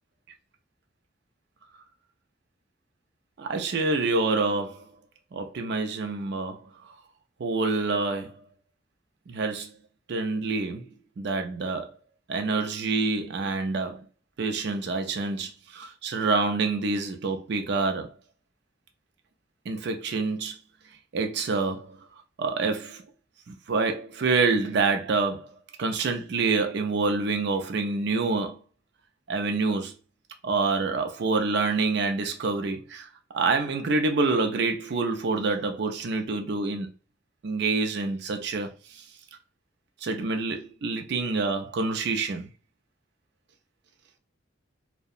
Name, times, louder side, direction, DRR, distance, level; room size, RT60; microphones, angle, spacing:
voice 1, 3.4-4.8 5.3-6.6 7.4-8.4 9.3-9.7 10.1-10.9 11.2-12.0 12.3-14.0 14.4-18.1 19.7-20.6 21.1-22.0 22.4-23.0 23.5-25.5 25.8-28.6 29.3-29.9 30.4-33.1 33.3-36.9 37.4-39.0 40.0-42.5, right 3 dB, 60° right, 0.4 m, -27 dB
2.7 x 2.1 x 2.3 m
head